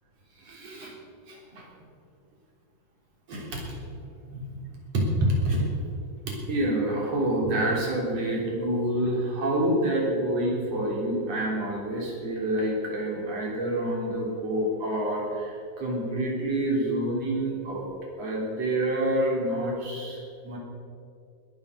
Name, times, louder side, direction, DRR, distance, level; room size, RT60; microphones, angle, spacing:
voice 1, 0.4-0.9 1.3-1.7 3.3-4.0 4.3-4.6 4.9-5.7 6.3-17.9 18.2-20.6, right 1 dB, 40° right, -2 dB, 4.0 m, -27 dB
20.5 x 9.6 x 6.7 m, 2.4 s
omnidirectional pair, 5.2 m